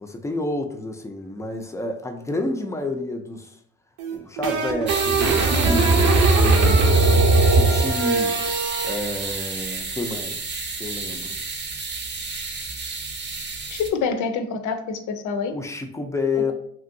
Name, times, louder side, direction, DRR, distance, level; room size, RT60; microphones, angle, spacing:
voice 1, 0.0-3.5 4.1-8.4 8.8-10.4 10.8-11.4 15.5-16.5, left 2 dB, 10° left, 5 dB, 0.3 m, -29 dB
sound 1, 4.0-9.0, right 3 dB, 75° right, 0.7 m, -19 dB
sound 2, 4.9-13.9, right 4 dB, 35° right, 0.6 m, -30 dB
voice 2, 13.7-15.5, left 5 dB, 80° left, 7 dB, 0.5 m, -26 dB
2.9 x 2.5 x 2.6 m, 0.69 s
cardioid pair, 90°, 30 cm